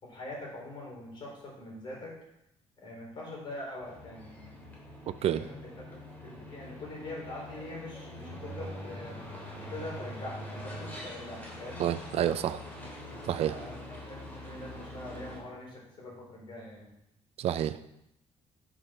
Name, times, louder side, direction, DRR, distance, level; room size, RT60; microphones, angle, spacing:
voice 1, 0.0-2.1 2.8-4.5 5.4-9.2 9.7-11.8 13.5-16.9, left 2 dB, 45° left, -2 dB, 4.2 m, -43 dB
sound 1, 3.8-15.4, equal, 15° left, 3.1 m, -44 dB
voice 2, 5.1-5.5 11.8-12.6 13.2-13.6 17.4-17.8, right 11 dB, 60° right, 11 dB, 0.5 m, -29 dB
11.0 x 6.3 x 5.1 m, 0.83 s
cardioid pair, 145°, 12 cm